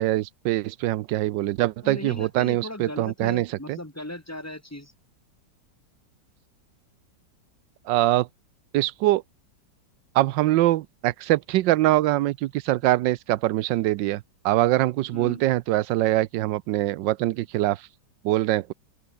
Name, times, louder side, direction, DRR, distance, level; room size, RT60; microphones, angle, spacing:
voice 1, 0.0-3.8 7.9-8.3 8.7-9.2 10.1-17.9 18.2-18.7, right 16 dB, 85° right, 1.3 m, -23 dB
voice 2, 1.8-4.9 15.1-15.4, left 1 dB, 10° left, 2.6 m, -37 dB
open air
omnidirectional pair, 1.9 m